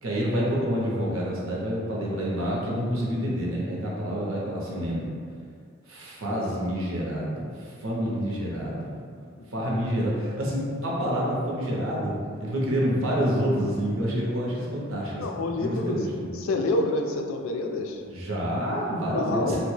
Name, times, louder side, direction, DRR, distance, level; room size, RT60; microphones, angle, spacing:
voice 1, 0.0-5.1 5.9-8.9 9.5-16.4 18.1-19.6, equal, 70° right, -4 dB, 0.7 m, -28 dB
voice 2, 15.2-16.0 16.3-18.0 19.1-19.6, left 2 dB, 70° left, 3 dB, 0.3 m, -27 dB
2.8 x 2.1 x 3.2 m, 2.2 s
head